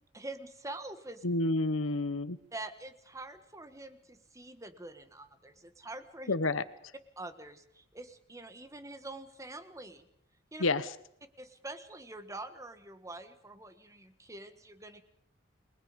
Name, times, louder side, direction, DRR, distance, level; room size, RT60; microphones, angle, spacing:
voice 1, 0.1-1.2 2.5-6.3 7.2-10.1 10.5-10.6 11.4-15.0, right 2 dB, 15° right, 9 dB, 1.7 m, -45 dB
voice 2, 1.2-2.4 6.3-6.6 10.6-10.9, left 2 dB, 90° left, 14 dB, 1.1 m, -29 dB
29.5 x 22.0 x 5.4 m, 0.70 s
head